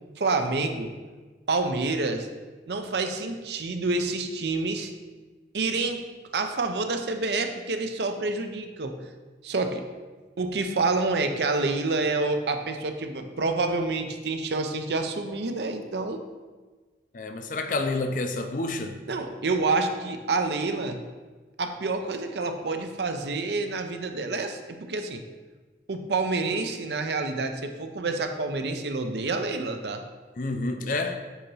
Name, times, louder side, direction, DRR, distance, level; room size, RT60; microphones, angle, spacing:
voice 1, 0.2-0.9 1.5-2.3 2.7-4.9 5.5-6.1 6.3-9.0 9.4-9.8 10.4-16.2 19.1-21.0 21.6-25.2 25.9-30.0, right 3 dB, 70° right, 0.6 m, -28 dB
voice 2, 17.1-19.0 30.4-31.2, left 2 dB, 50° left, 0.5 m, -29 dB
8.4 x 2.9 x 5.4 m
head